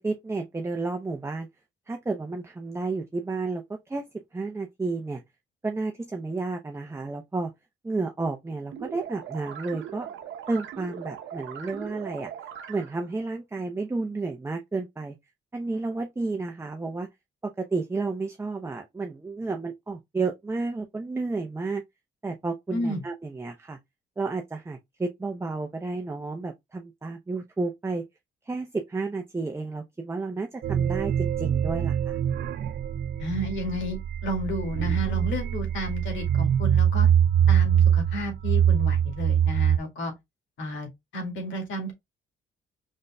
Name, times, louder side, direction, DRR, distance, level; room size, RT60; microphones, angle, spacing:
voice 1, 0.0-1.5 1.9-4.0 4.3-5.2 5.6-7.5 7.8-10.1 10.5-12.3 12.7-15.2 15.5-17.1 17.4-21.8 22.2-23.8 24.2-28.0 28.4-32.2, right 3 dB, 15° right, 0.6 m, -31 dB
sound 1, 8.7-13.1, right 9 dB, 75° right, 0.8 m, -40 dB
voice 2, 22.7-23.0 33.2-37.1 37.5-40.1 40.6-41.9, equal, 75° left, 2.2 m, -32 dB
sound 2, 30.6-39.8, right 9 dB, 55° right, 0.4 m, -23 dB
5.2 x 3.9 x 2.2 m
cardioid pair, 90°, 20 cm